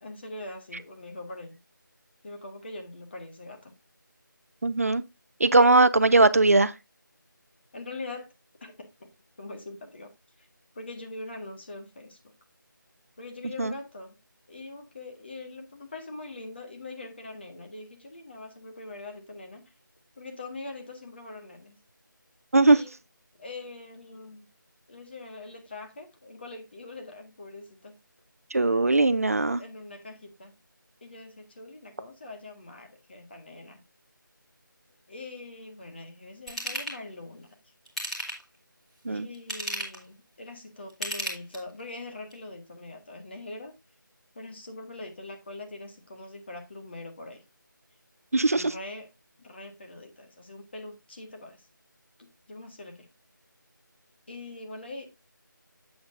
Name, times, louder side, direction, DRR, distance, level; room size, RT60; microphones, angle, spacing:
voice 1, 0.0-1.6 2.2-3.7 7.7-8.3 8.6-9.1 9.4-10.1 10.4-10.5 10.7-12.2 13.2-14.2 14.5-19.7 20.2-21.8 22.7-22.9 23.4-24.5 24.9-28.0 29.6-30.5 31.0-33.8 35.1-37.6 39.1-43.7 44.3-47.4 48.5-49.1 49.4-51.7 52.2-53.1 54.3-55.1, left 2 dB, 30° left, 1.7 m, -42 dB
voice 2, 4.6-5.0 5.4-6.7 13.6-13.7 22.5-22.8 28.5-29.6 39.0-39.3 48.3-48.7, right 2 dB, 45° right, 0.5 m, -20 dB
Ratchet pawl / Tools, 36.5-37.0 37.8-38.5 39.3-40.0 40.9-41.8 42.3-42.4, right 1 dB, ahead, 1.4 m, -34 dB
8.7 x 7.9 x 2.6 m
figure-of-eight pair, 170°, 11 cm